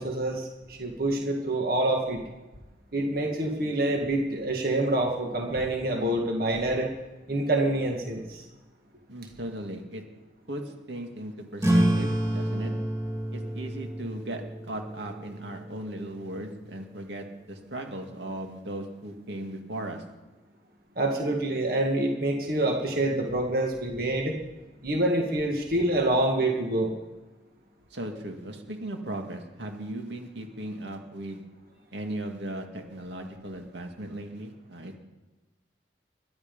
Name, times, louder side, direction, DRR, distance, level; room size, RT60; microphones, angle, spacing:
voice 1, 0.0-2.2 2.9-6.9 7.3-8.5 21.0-24.4 24.8-26.9, right 1 dB, 55° right, 1 dB, 1.9 m, -26 dB
voice 2, 9.1-10.0 10.5-12.7 13.3-20.0 27.9-31.4 31.9-35.0, right 1 dB, 75° right, 3 dB, 2.2 m, -37 dB
sound 1, 11.6-16.7, right 1 dB, 15° right, 2.1 m, -29 dB
22.5 x 11.5 x 5.4 m, 1.2 s
head